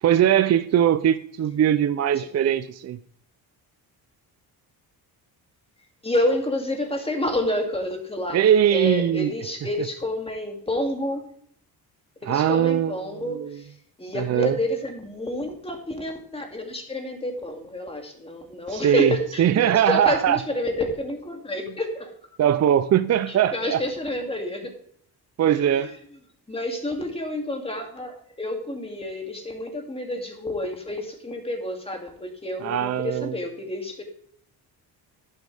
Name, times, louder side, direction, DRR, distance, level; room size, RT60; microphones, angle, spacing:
voice 1, 0.0-3.0 8.3-9.3 9.8-9.9 12.3-13.6 14.1-14.6 18.7-20.4 22.4-23.8 25.4-25.9 32.6-33.4, right 10 dB, 40° right, 11 dB, 0.5 m, -21 dB
voice 2, 6.0-8.4 8.7-11.2 12.2-13.7 14.0-22.1 23.3-24.8 25.7-25.9 26.5-34.0, left 1 dB, 15° left, 3 dB, 2.5 m, -29 dB
11.5 x 9.8 x 3.4 m, 0.64 s
cardioid pair, 115°, 39 cm